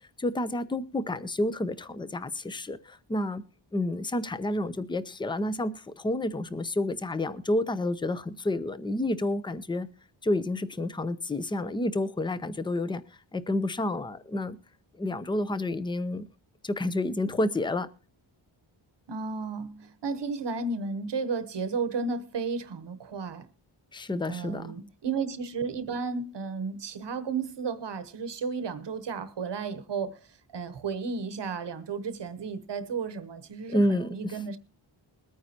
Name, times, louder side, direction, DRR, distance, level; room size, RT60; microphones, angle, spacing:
voice 1, 0.2-3.4 3.7-9.9 10.2-13.0 13.3-14.6 15.0-16.2 16.6-17.9 23.9-24.7 33.7-34.4, left 1 dB, 10° left, 0.5 m, -29 dB
voice 2, 19.1-23.5 24.3-34.6, right 5 dB, 60° right, 1.0 m, -33 dB
21.5 x 9.3 x 2.8 m
wide cardioid pair, 150°, 49 cm